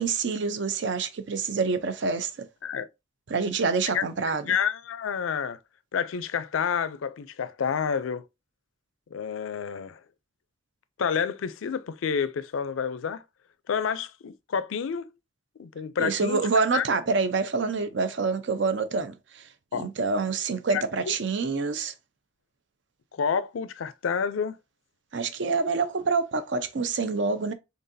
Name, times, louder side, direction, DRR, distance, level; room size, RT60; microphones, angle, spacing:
voice 1, 0.0-2.5 3.3-4.5 16.0-21.9 25.1-27.5, right 4 dB, 65° right, 0.5 m, -27 dB
voice 2, 3.9-5.6 5.9-8.2 9.1-10.0 11.0-13.2 13.7-15.1 15.6-16.4 16.7-16.9 19.7-19.9 20.7-21.1 23.1-24.6, left 7 dB, 85° left, 0.4 m, -29 dB
3.9 x 3.6 x 2.6 m
head